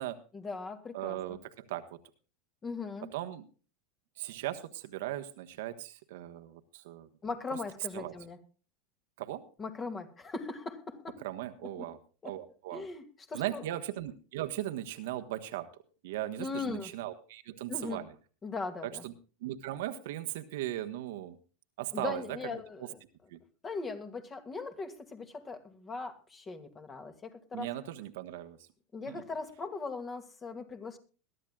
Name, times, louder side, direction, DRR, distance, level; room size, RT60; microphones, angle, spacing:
voice 1, 0.3-1.4 2.6-3.1 7.2-8.4 9.6-11.2 11.8-11.9 12.2-12.3 12.7-13.6 16.4-16.9 17.7-18.0 18.4-19.0 21.9-23.0 23.6-27.7 28.9-31.0, left 4 dB, 25° left, 7 dB, 2.3 m, -39 dB
voice 2, 0.9-2.0 3.1-3.5 4.2-7.1 7.9-8.1 9.2-9.4 11.2-12.0 12.2-12.9 13.3-15.7 16.0-18.1 18.8-19.1 19.4-21.4 21.8-22.4 23.3-23.4 27.5-28.6 29.1-29.2, right 14 dB, 70° right, 8 dB, 1.3 m, -38 dB
22.0 x 12.5 x 2.4 m, 0.37 s
hypercardioid pair, 90°, 0 cm